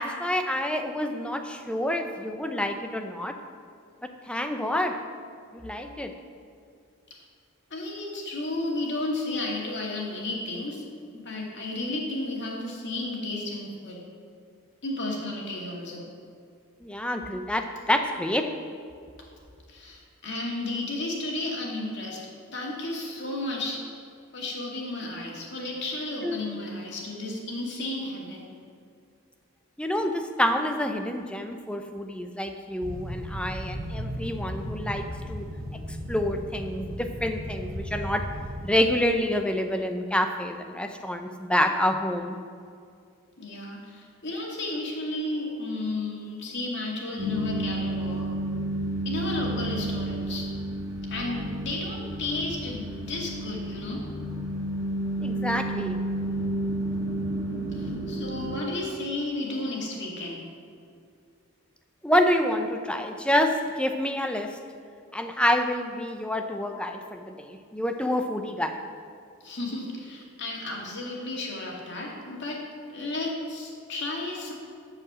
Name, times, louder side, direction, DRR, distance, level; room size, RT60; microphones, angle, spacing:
voice 1, 0.0-3.3 4.3-5.0 5.5-6.1 16.8-18.5 26.2-26.4 29.8-35.5 36.1-38.3 38.6-42.4 55.2-56.0 62.0-64.6 65.1-68.8, left 1 dB, 5° left, 5 dB, 0.6 m, -27 dB
voice 2, 7.7-10.8 11.1-14.0 14.8-16.0 19.7-22.2 22.5-23.8 24.3-28.4 43.4-48.3 49.0-50.5 51.0-54.0 57.7-60.4 69.4-72.6 72.9-74.5, left 2 dB, 50° left, -2 dB, 2.2 m, -33 dB
sound 1, 32.8-38.8, equal, 75° right, 1.9 m, -35 dB
sound 2, 47.2-58.6, right 1 dB, 15° right, 1.7 m, -31 dB
13.0 x 4.9 x 7.4 m, 2.3 s
head